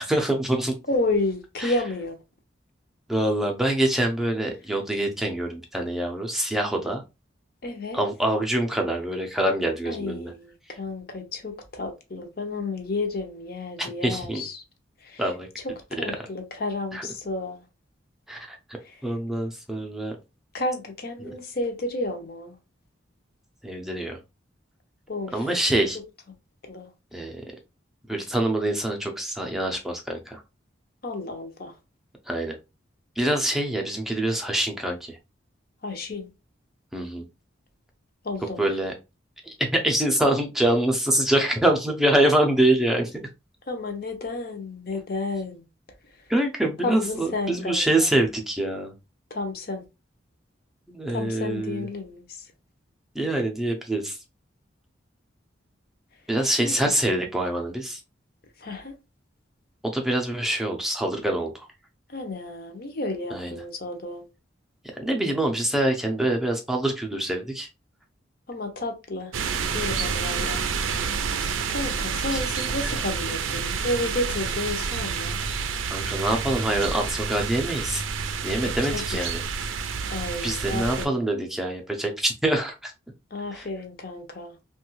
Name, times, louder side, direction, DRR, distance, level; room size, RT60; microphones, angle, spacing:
voice 1, 0.0-0.7 1.6-1.7 3.1-7.0 7.9-10.3 13.8-14.4 15.2-15.5 16.9-17.1 18.3-18.6 19.0-20.2 21.2-21.3 23.6-24.2 25.3-26.0 27.1-27.4 28.1-30.4 32.3-32.6 33.2-35.2 36.9-37.2 38.6-38.9 39.4-43.3 46.3-48.9 50.9-51.9 53.1-54.2 56.3-58.0 59.8-61.7 63.3-63.6 65.0-67.7 72.3-72.4 72.8-73.0 75.9-78.0 78.4-79.4 80.4-82.9 83.5-83.7, right 1 dB, ahead, 0.5 m, -25 dB
voice 2, 0.9-2.2 7.6-8.0 9.8-14.6 15.1-15.2 15.6-17.6 20.5-22.5 25.1-25.4 26.6-26.9 31.0-31.7 35.8-36.3 38.2-38.6 43.7-45.6 46.8-48.1 49.3-49.8 51.1-52.2 56.6-56.7 58.6-58.9 62.1-64.3 68.5-69.3 69.7-70.6 71.7-75.4 78.6-79.2 80.1-81.1 83.3-84.5, left 2 dB, 50° left, 0.6 m, -31 dB
sound 1, 69.3-81.1, right 5 dB, 90° right, 0.4 m, -29 dB
3.1 x 2.3 x 3.0 m
head